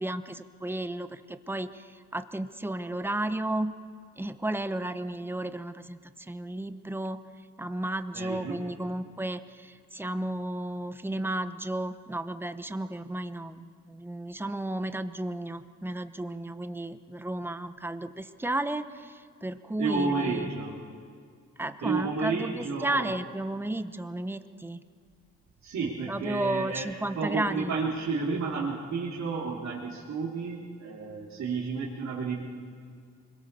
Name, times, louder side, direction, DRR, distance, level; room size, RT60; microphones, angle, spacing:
voice 1, 0.0-3.7 4.2-7.2 7.6-20.5 21.6-24.8 26.1-27.7, right 1 dB, 5° right, 10 dB, 1.0 m, -33 dB
voice 2, 8.1-8.6 19.8-20.7 21.8-23.1 25.6-32.4, right 4 dB, 65° right, -5 dB, 3.5 m, -31 dB
24.5 x 22.0 x 6.9 m, 2.1 s
cardioid pair, 90°, 30 cm